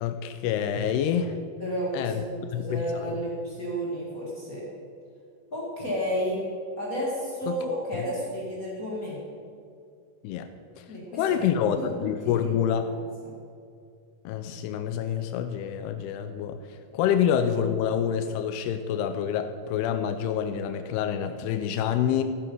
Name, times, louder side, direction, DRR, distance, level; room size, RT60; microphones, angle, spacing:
voice 1, 0.0-1.4 1.9-2.2 2.5-3.2 7.5-7.6 7.9-8.0 10.2-10.5 10.8-10.9 11.1-12.9 14.3-16.6 16.9-22.2, left 8 dB, 85° left, 8 dB, 2.6 m, -27 dB
voice 2, 1.6-4.6 5.5-6.4 6.8-9.2 10.9-11.4 11.7-12.5 12.8-12.9 13.2-13.3, equal, 30° left, -5 dB, 1.7 m, -32 dB
15.0 x 7.9 x 5.5 m, 2.3 s
omnidirectional pair, 4.6 m